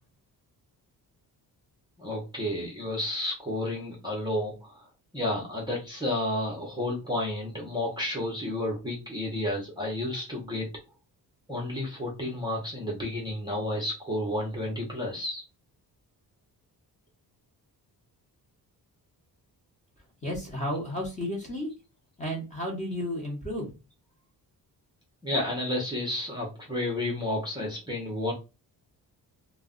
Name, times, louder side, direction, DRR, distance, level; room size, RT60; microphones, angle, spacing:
voice 1, 2.0-4.9 5.1-10.7 11.5-15.4 25.2-28.3, left 1 dB, 10° right, 0.6 m, -31 dB
voice 2, 20.2-21.7 22.2-23.7, equal, 20° left, 0.8 m, -32 dB
2.3 x 2.1 x 3.6 m
wide cardioid pair, 160°, 39 cm